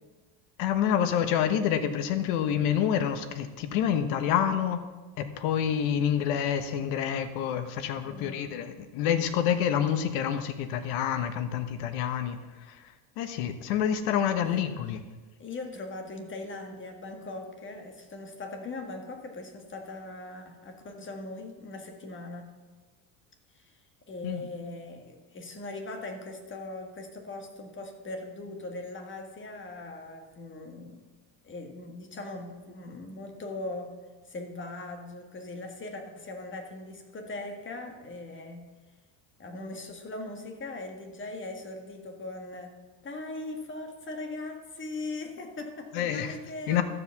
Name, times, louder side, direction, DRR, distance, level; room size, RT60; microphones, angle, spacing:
voice 1, 0.6-4.8 5.2-12.4 12.7-12.8 13.2-15.0 24.2-24.5 45.9-46.4 46.7-46.8, left 9 dB, 75° left, 10 dB, 1.2 m, -27 dB
voice 2, 8.0-8.5 14.4-14.8 15.4-22.5 23.5-23.8 24.1-31.1 31.4-33.9 34.2-38.7 39.4-42.8 43.0-46.8, left 2 dB, 25° left, 4 dB, 1.6 m, -40 dB
13.0 x 5.2 x 7.1 m, 1.3 s
supercardioid pair, 120°, 47 cm